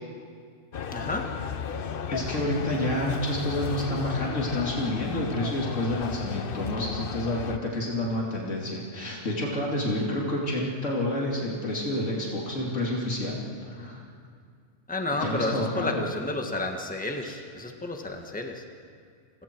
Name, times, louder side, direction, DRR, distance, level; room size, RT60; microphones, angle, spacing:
sound 1, 0.7-7.6, left 6 dB, 50° left, 0.9 m, -34 dB
voice 1, 0.9-1.3 14.9-18.6, left 2 dB, 5° left, 3 dB, 1.4 m, -31 dB
voice 2, 2.1-14.0 15.2-16.0 17.2-17.3, left 1 dB, 85° left, -3 dB, 3.1 m, -29 dB
29.5 x 22.0 x 4.6 m, 2.2 s
omnidirectional pair, 1.3 m